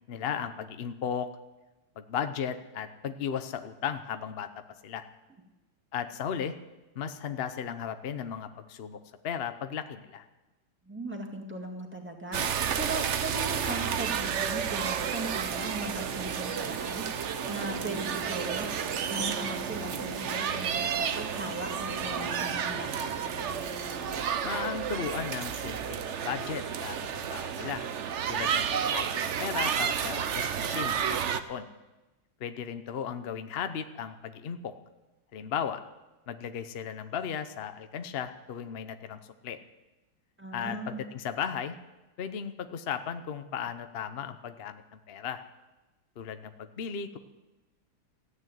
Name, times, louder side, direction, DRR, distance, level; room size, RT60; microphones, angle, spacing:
voice 1, 0.1-1.3 2.0-4.5 4.8-5.1 5.9-6.6 6.9-9.0 9.2-10.2 24.4-27.9 28.3-31.2 31.5-31.7 32.4-34.7 35.3-35.8 36.3-39.6 40.5-41.8 42.2-45.4 46.2-47.2, left 8 dB, 65° left, 9 dB, 0.6 m, -35 dB
voice 2, 10.9-17.1 17.5-18.7 19.1-23.1 40.4-41.0, right 1 dB, 5° right, 1 dB, 1.9 m, -38 dB
sound 1, 12.3-31.4, right 8 dB, 75° right, 0.6 m, -31 dB
sound 2, 15.5-24.2, equal, 15° left, 1.1 m, -44 dB
15.0 x 9.6 x 9.2 m, 1.1 s
omnidirectional pair, 2.2 m